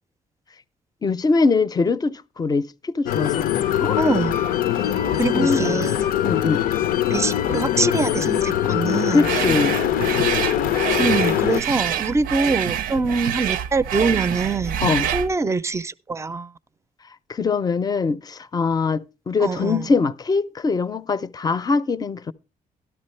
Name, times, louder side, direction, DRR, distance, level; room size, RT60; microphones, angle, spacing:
voice 1, 1.0-4.0 4.8-5.8 6.2-6.6 9.1-9.8 14.8-15.1 17.3-22.3, left 4 dB, 25° left, 0.5 m, -23 dB
sound 1, 3.1-11.6, left 11 dB, 85° left, 0.6 m, -22 dB
voice 2, 4.0-4.4 5.2-6.1 7.1-9.3 11.0-14.8 15.1-16.5 19.4-19.9, right 4 dB, 20° right, 0.5 m, -24 dB
sound 2, 9.2-15.3, right 10 dB, 85° right, 0.6 m, -26 dB
12.5 x 12.0 x 3.2 m
cardioid pair, 105°, 14 cm